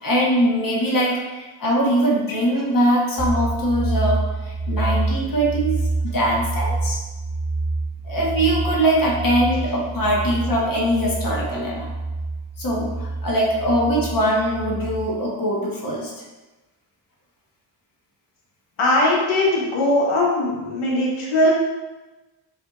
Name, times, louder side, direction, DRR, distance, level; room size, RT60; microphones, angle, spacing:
voice 1, 0.0-7.0 8.0-11.9 12.6-16.1, equal, 45° left, -4 dB, 1.2 m, -22 dB
sound 1, 3.2-15.0, right 3 dB, 10° left, 1.2 m, -27 dB
voice 2, 18.8-21.5, left 1 dB, 85° left, -4 dB, 1.1 m, -20 dB
7.7 x 2.7 x 2.4 m, 1.1 s
cardioid pair, 80°, 48 cm